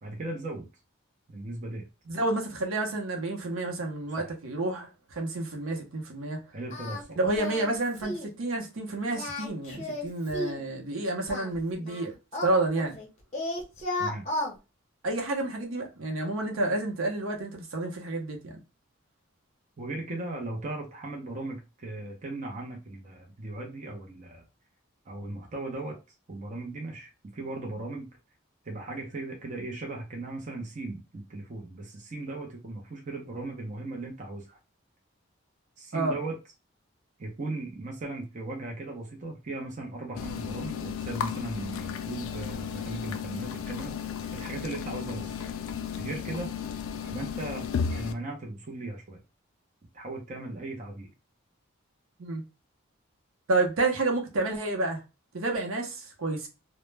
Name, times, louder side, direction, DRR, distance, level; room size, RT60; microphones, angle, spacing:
voice 1, 0.0-0.7 1.3-1.8 4.2-4.3 6.5-7.2 14.0-14.3 19.8-24.4 25.1-26.0 26.3-28.2 28.6-34.6 35.8-36.4 37.2-43.9 44.3-45.4 46.0-46.5 47.0-49.2 49.9-51.1, right 2 dB, 35° right, 0.5 m, -37 dB
voice 2, 2.1-6.4 7.2-12.1 12.4-13.0 15.0-18.6 35.9-36.2 52.2-52.4 53.5-55.0 55.3-56.5, right 2 dB, 75° right, 0.6 m, -30 dB
Singing, 6.7-7.0 7.3-7.7 8.0-8.3 9.1-10.6 11.3-13.1 13.3-14.5, left 1 dB, 30° left, 0.6 m, -34 dB
sound 1, 40.2-48.1, left 7 dB, 75° left, 0.3 m, -34 dB
2.1 x 2.0 x 3.1 m
head